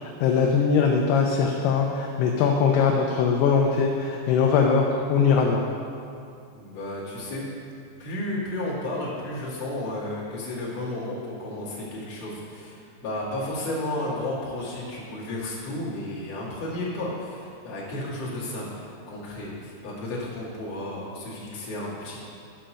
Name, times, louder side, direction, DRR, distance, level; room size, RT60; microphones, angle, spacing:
voice 1, 0.0-5.6, left 6 dB, 80° left, 1 dB, 2.4 m, -21 dB
voice 2, 6.5-7.4 8.0-22.2, left 1 dB, 45° left, -7 dB, 2.7 m, -33 dB
10.5 x 5.7 x 6.3 m, 2.5 s
omnidirectional pair, 5.2 m